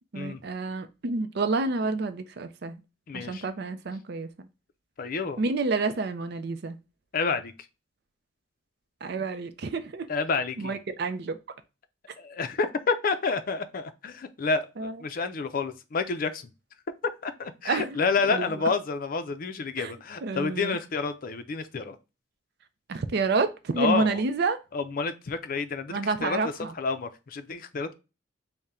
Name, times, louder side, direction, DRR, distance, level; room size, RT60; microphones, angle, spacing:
voice 1, 0.1-2.8 3.1-4.5 5.4-6.8 9.0-10.1 10.6-11.4 14.8-15.0 17.6-18.0 18.2-18.5 19.8-19.9 20.2-20.8 22.9-24.6 25.9-26.7, right 3 dB, 60° right, 0.5 m, -29 dB
voice 2, 3.1-3.4 5.0-5.4 7.1-7.5 10.1-10.7 12.2-16.4 17.2-22.0 23.8-24.2 24.7-26.4 26.8-27.9, left 4 dB, 50° left, 0.4 m, -29 dB
3.7 x 2.1 x 4.1 m
head